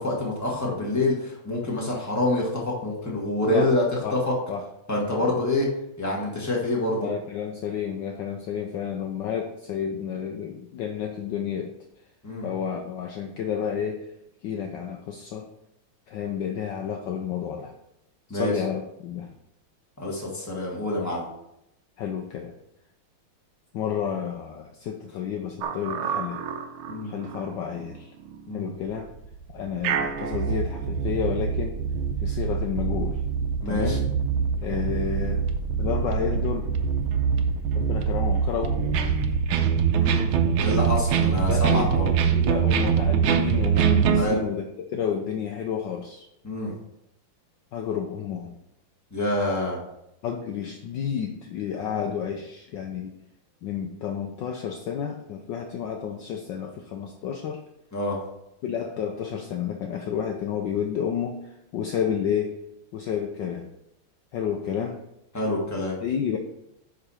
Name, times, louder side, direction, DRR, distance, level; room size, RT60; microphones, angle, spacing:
voice 1, 0.0-3.8 4.1-4.3 4.9-5.7 6.0-7.1 12.2-12.5 18.3-18.5 20.0-21.2 26.9-27.1 28.5-28.7 33.6-34.0 40.0-40.2 40.6-42.1 44.2-44.4 46.4-46.7 49.1-49.8 57.9-58.2 65.3-66.0, left 2 dB, 10° left, -3 dB, 1.6 m, -26 dB
voice 2, 7.0-11.7 12.4-14.1 14.4-15.5 16.1-17.7 18.3-19.3 22.0-22.6 23.7-26.4 27.0-28.1 28.5-29.0 29.5-31.8 32.2-33.2 33.7-34.1 34.6-35.4 35.8-36.7 37.7-38.8 41.5-41.9 42.3-46.3 47.7-48.6 50.2-53.2 53.6-57.6 58.6-62.6 62.9-63.7 64.3-65.0 66.0-66.4, left 8 dB, 70° left, 3 dB, 1.2 m, -30 dB
sound 1, 25.6-27.4 27.8-27.9 28.3-28.4 29.2-44.2, right 7 dB, 85° right, 1.5 m, -24 dB
9.9 x 4.0 x 4.3 m, 0.83 s
omnidirectional pair, 2.3 m